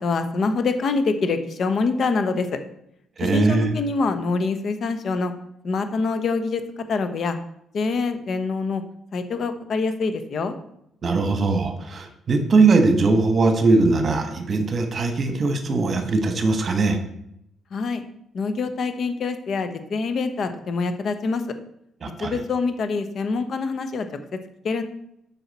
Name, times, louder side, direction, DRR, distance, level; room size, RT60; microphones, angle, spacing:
voice 1, 0.0-2.6 3.2-5.3 5.6-6.6 6.9-7.4 7.7-8.8 9.1-10.6 17.7-18.0 18.3-21.4 22.2-24.1 24.3-24.4 24.6-24.8, left 4 dB, 55° left, 9 dB, 0.9 m, -25 dB
voice 2, 3.2-3.7 11.0-17.0 22.0-22.4, right 3 dB, 45° right, 6 dB, 1.3 m, -20 dB
8.0 x 5.8 x 4.2 m, 0.76 s
cardioid pair, 90°, 0 cm